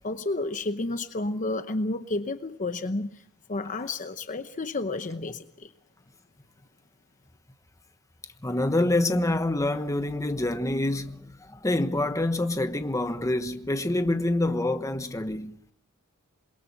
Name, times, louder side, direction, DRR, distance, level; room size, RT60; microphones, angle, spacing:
voice 1, 0.0-3.2 3.5-5.7, left 2 dB, 35° left, 0.9 m, -31 dB
voice 2, 8.4-15.6, left 1 dB, 15° left, 1.2 m, -26 dB
28.0 x 22.0 x 6.0 m
head